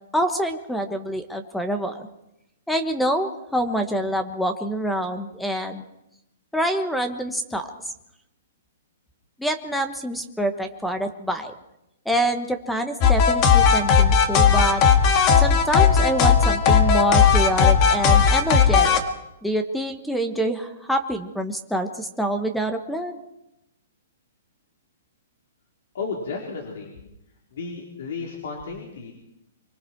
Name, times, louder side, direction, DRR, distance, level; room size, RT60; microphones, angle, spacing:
voice 1, 0.1-2.1 2.7-5.8 6.5-7.7 9.4-11.5 12.0-14.8 15.4-19.0 19.4-23.2, right 1 dB, ahead, 7 dB, 1.2 m, -26 dB
sound 1, 13.0-19.0, left 6 dB, 30° left, 2.2 m, -16 dB
voice 2, 25.9-26.9 27.5-29.1, left 4 dB, 65° left, 0 dB, 4.0 m, -33 dB
25.5 x 24.0 x 4.6 m, 0.85 s
hypercardioid pair, 155°, 0 cm